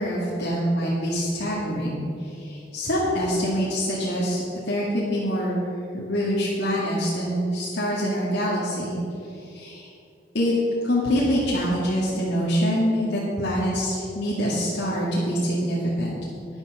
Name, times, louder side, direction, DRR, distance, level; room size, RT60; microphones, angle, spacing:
voice 1, 0.0-2.0 2.4-5.6 5.9-9.0 9.5-9.9 10.3-10.5 10.8-16.1, equal, 80° left, -7 dB, 2.2 m, -25 dB
12.5 x 10.0 x 5.0 m, 2.6 s
head